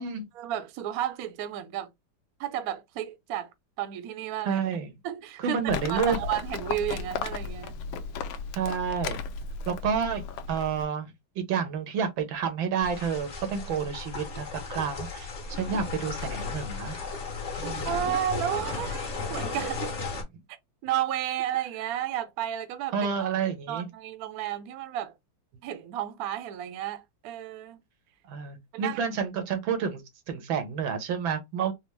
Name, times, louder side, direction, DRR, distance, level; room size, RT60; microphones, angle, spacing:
voice 1, 0.3-1.9 2.4-3.5 3.8-4.6 5.0-5.6 5.9-7.8 17.6-19.9 20.8-22.9 23.2-23.3 23.7-25.1 25.6-27.8 28.7-29.0, right 11 dB, 70° right, 0.9 m, -32 dB
voice 2, 4.5-4.9 5.4-6.2 8.6-9.2 9.7-10.2 10.5-15.3 15.6-17.0 17.6-17.9 22.9-23.9 28.3-30.0 30.3-31.7, right 6 dB, 90° right, 1.7 m, -29 dB
Livestock farm animals working animals, 5.7-10.9, left 5 dB, 75° left, 1.2 m, -35 dB
sound 1, 12.8-20.2, left 4 dB, 40° left, 1.3 m, -35 dB
4.3 x 2.0 x 3.1 m
omnidirectional pair, 2.1 m